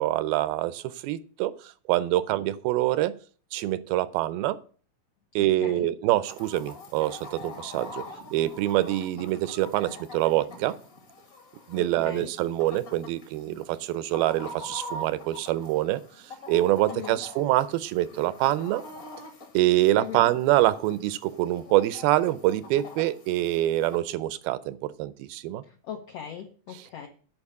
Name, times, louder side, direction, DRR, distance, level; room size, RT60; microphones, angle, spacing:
voice 1, 0.0-1.5 1.9-3.1 3.5-4.6 5.4-8.0 8.3-10.8 11.7-16.0 16.5-18.8 19.5-25.6, right 15 dB, 90° right, 15 dB, 2.5 m, -25 dB
voice 2, 5.4-5.9 11.8-12.3 16.9-17.2 20.0-20.3 25.6-27.1, left 9 dB, 80° left, 3 dB, 1.4 m, -39 dB
Chicken rooster, 6.2-24.0, left 1 dB, 45° left, 1.0 m, -44 dB
11.0 x 4.7 x 8.1 m, 0.42 s
omnidirectional pair, 4.2 m